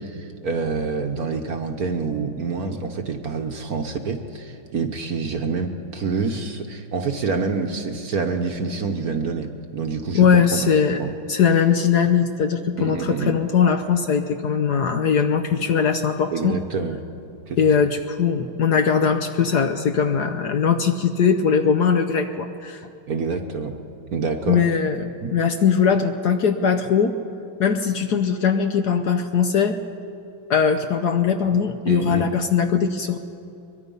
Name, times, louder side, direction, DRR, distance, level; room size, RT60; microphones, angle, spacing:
voice 1, 0.0-9.5 9.7-10.6 11.0-11.1 12.8-13.4 16.3-17.0 17.5-17.6 23.1-23.7 24.1-24.6 25.2-25.3 31.9-32.2, right 4 dB, 55° right, 5 dB, 1.3 m, -27 dB
voice 2, 10.1-11.0 11.3-16.6 17.6-22.9 24.5-27.2 27.6-29.8 30.5-33.2, left 6 dB, 60° left, 7 dB, 1.2 m, -20 dB
22.5 x 22.5 x 5.5 m, 2.6 s
omnidirectional pair, 2.3 m